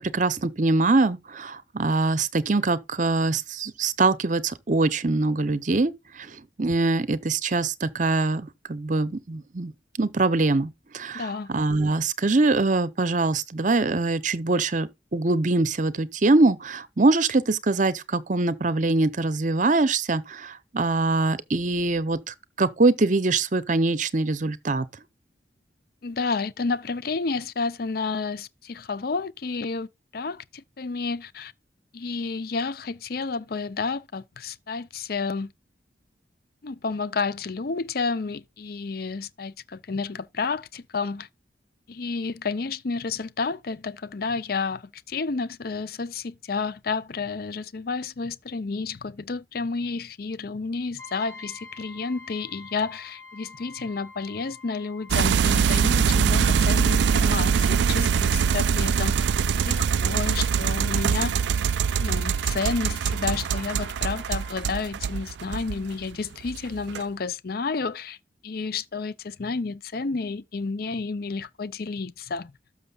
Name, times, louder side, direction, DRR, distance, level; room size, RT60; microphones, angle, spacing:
voice 1, 0.0-5.9 6.2-6.3 6.6-9.7 10.0-24.9, right 3 dB, 45° right, 0.7 m, -23 dB
voice 2, 11.1-11.5 26.0-29.9 30.1-31.5 31.9-35.5 36.6-41.3 41.9-59.2 59.6-61.4 62.0-68.2 68.4-72.5, left 4 dB, 55° left, 0.6 m, -30 dB
Brass instrument, 51.0-64.6, left 4 dB, 15° left, 6.8 m, -48 dB
sound 1, 55.1-66.0 66.4-67.0, right 6 dB, 75° right, 0.4 m, -23 dB
12.5 x 6.5 x 2.4 m
head